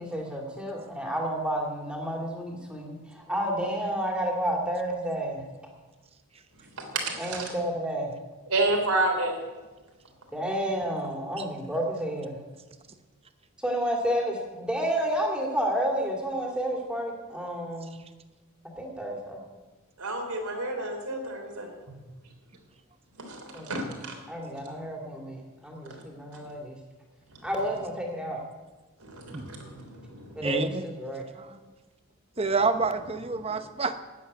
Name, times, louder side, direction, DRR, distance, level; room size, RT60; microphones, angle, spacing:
voice 1, 0.0-5.4 7.2-8.1 10.3-12.4 13.6-18.0 18.8-19.4 23.5-23.9 24.3-26.8 27.4-28.4 30.3-31.2, equal, 5° right, 0 dB, 2.4 m, -30 dB
voice 2, 6.7-7.5 8.5-9.4 20.0-21.9 23.2-24.2 25.9-26.0 27.3-27.5 29.0-30.5 33.4-33.6, right 2 dB, 90° right, 2 dB, 3.6 m, -30 dB
voice 3, 30.4-30.8 31.4-31.6 32.4-34.0, right 4 dB, 25° right, 9 dB, 0.8 m, -28 dB
13.0 x 8.3 x 9.5 m, 1.2 s
head